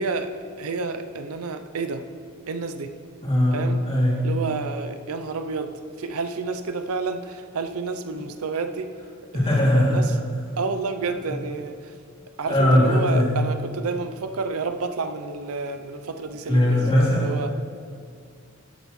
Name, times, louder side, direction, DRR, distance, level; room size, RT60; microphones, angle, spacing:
voice 1, 0.0-2.1 2.5-2.9 3.5-3.8 4.2-5.7 6.0-8.9 9.3-10.2 10.6-11.9 12.4-16.8 17.2-17.5, right 4 dB, 80° right, 8 dB, 0.6 m, -30 dB
voice 2, 3.2-3.6 3.9-4.3 9.3-10.0 12.5-13.3 16.5-17.3, left 1 dB, 30° left, -6 dB, 2.8 m, -19 dB
12.5 x 9.0 x 3.2 m, 2.2 s
head